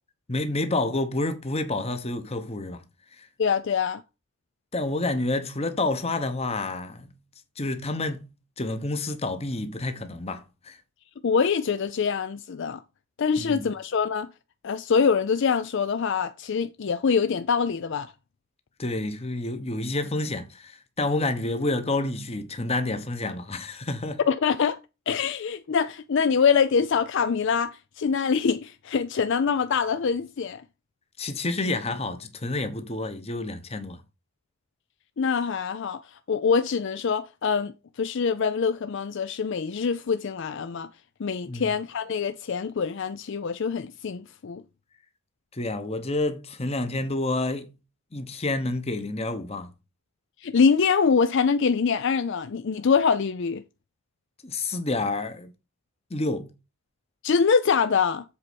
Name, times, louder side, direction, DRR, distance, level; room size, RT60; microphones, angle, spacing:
voice 1, 0.3-2.8 3.2-3.3 4.7-7.1 7.6-8.2 8.6-10.8 13.4-13.7 18.8-24.2 31.2-34.0 41.5-41.7 45.5-47.7 48.1-49.7 54.4-55.5 56.1-56.5, left 2 dB, 30° left, 1.0 m, -29 dB
voice 2, 3.4-4.0 11.2-12.8 13.2-14.3 14.6-18.1 24.3-24.8 25.1-30.6 35.2-40.9 41.2-44.6 50.4-53.6 57.2-58.2, left 6 dB, 55° left, 0.4 m, -24 dB
7.8 x 4.2 x 6.2 m
head